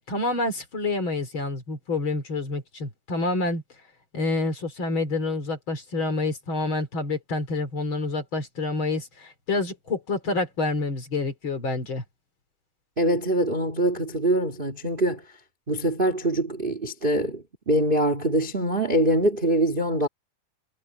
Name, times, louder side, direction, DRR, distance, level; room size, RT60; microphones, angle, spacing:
voice 1, 0.0-3.6 4.1-12.0, left 2 dB, 35° left, 3.3 m, -28 dB
voice 2, 13.0-15.2 15.7-20.1, right 1 dB, 20° right, 1.4 m, -24 dB
omnidirectional pair, 4.2 m